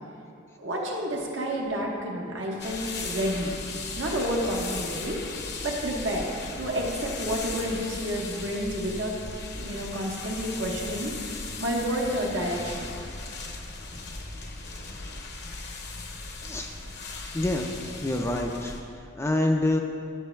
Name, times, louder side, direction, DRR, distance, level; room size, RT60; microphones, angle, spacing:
voice 1, 0.6-3.6 4.0-5.2 5.6-6.3 6.6-9.2 9.5-11.2 11.6-12.9, equal, 70° right, -2 dB, 1.2 m, -30 dB
sound 1, 2.6-18.8, left 3 dB, 55° left, 0.7 m, -37 dB
voice 2, 16.4-16.7 17.3-18.8 19.2-19.8, left 1 dB, 15° left, 2 dB, 0.3 m, -26 dB
11.5 x 6.9 x 2.3 m, 2.5 s
head